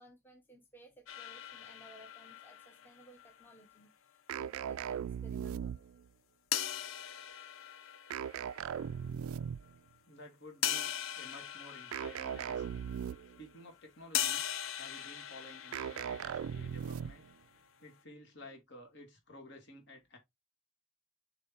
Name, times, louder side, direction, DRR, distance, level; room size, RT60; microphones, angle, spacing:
voice 1, 0.0-5.8, right 1 dB, 10° left, 0.9 m, -59 dB
sound 1, 1.1-3.8 6.5-9.0 9.6-9.7 10.6-13.4 14.1-17.1, left 11 dB, 75° left, 0.7 m, -40 dB
sound 2, 4.3-6.1 8.1-9.8 11.9-13.4 15.7-17.3, right 8 dB, 90° right, 0.3 m, -38 dB
voice 2, 10.1-10.9 11.2-12.8 13.4-14.4 14.8-17.2 17.8-20.2, left 1 dB, 55° left, 2.6 m, -53 dB
6.9 x 3.2 x 4.4 m
head